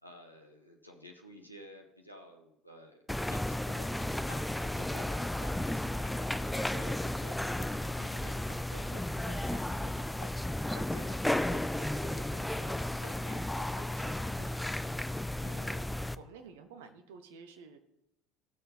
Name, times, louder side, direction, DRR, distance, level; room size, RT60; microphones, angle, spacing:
voice 1, 0.0-3.0 3.3-14.8, equal, 90° left, 2 dB, 1.0 m, -53 dB
sound 1, 3.1-16.2, left 1 dB, 5° left, 0.4 m, -34 dB
voice 2, 15.3-15.9 16.2-17.8, right 5 dB, 65° right, 7 dB, 1.1 m, -51 dB
17.5 x 6.7 x 4.1 m, 0.83 s
figure-of-eight pair, 65°, 0 cm